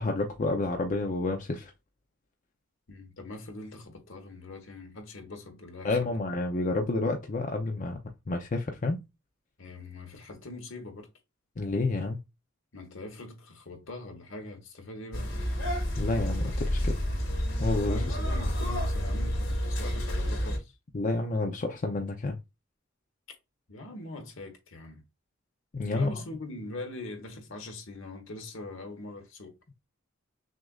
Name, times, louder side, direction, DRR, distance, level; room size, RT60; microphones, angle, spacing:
voice 1, 0.0-1.7 5.8-8.0 8.3-9.0 11.6-12.2 16.0-17.0 17.6-18.0 20.9-22.4 25.7-26.1, left 2 dB, 40° left, 0.5 m, -29 dB
voice 2, 2.9-6.2 9.6-11.1 12.7-15.3 17.9-20.8 23.7-25.0 25.9-29.6, left 2 dB, 70° left, 1.1 m, -42 dB
sound 1, 15.1-20.6, equal, 85° left, 2.3 m, -29 dB
6.2 x 2.5 x 2.3 m
head